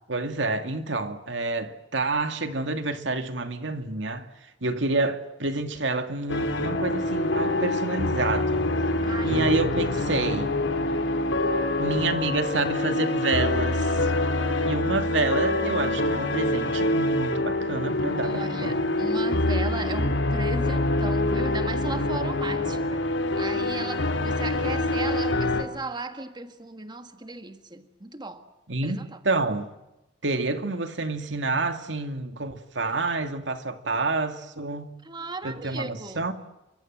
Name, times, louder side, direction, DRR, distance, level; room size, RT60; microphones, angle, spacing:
voice 1, 0.1-4.3 4.6-8.7 9.2-10.5 11.8-14.1 14.6-18.8 28.7-29.8 30.2-34.9 35.4-36.3, right 3 dB, 75° right, 2.4 m, -28 dB
sound 1, 6.3-25.6, left 2 dB, 80° left, 3.0 m, -25 dB
voice 2, 9.0-9.5 9.8-10.1 14.5-14.7 18.2-23.1 23.3-28.5 28.8-29.2 35.0-36.2, right 2 dB, 25° right, 1.7 m, -36 dB
29.0 x 24.5 x 7.8 m
head